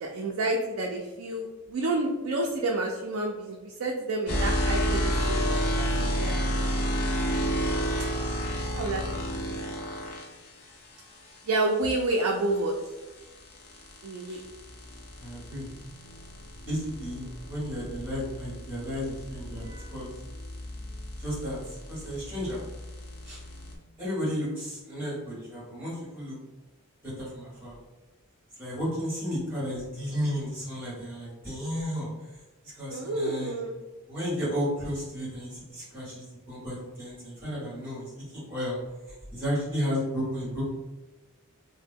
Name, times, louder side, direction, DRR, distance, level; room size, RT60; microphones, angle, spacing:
voice 1, 0.0-6.4 8.7-9.0 11.5-12.8 14.0-14.4 32.9-33.7, right 2 dB, 65° right, -1 dB, 0.3 m, -29 dB
sound 1, 4.3-10.3 12.7-23.7, equal, 75° left, 0.6 m, -31 dB
voice 2, 15.2-15.7 16.7-20.1 21.2-21.6 21.9-22.6 23.2-23.4 24.0-26.4 27.0-27.7 28.6-32.1 32.6-33.6 34.1-38.8 39.3-40.7, equal, 10° right, -8 dB, 1.5 m, -33 dB
2.8 x 2.1 x 3.5 m, 1.2 s
head